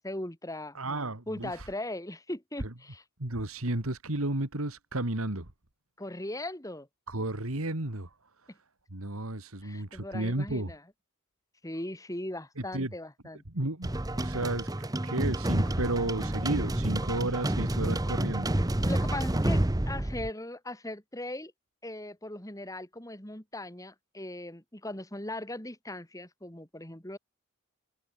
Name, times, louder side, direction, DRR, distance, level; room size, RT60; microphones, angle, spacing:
voice 1, 0.0-0.8 1.3-3.0 6.0-6.9 9.6-10.8 11.6-13.4 18.9-21.5 21.8-27.2, left 1 dB, 15° left, 2.6 m, -39 dB
voice 2, 0.7-1.7 3.2-5.5 7.1-8.1 8.9-10.7 12.7-12.9 13.5-14.7 15.0-18.5, right 1 dB, 70° right, 2.7 m, -32 dB
sound 1, 13.8-20.3, right 1 dB, 15° right, 0.8 m, -29 dB
head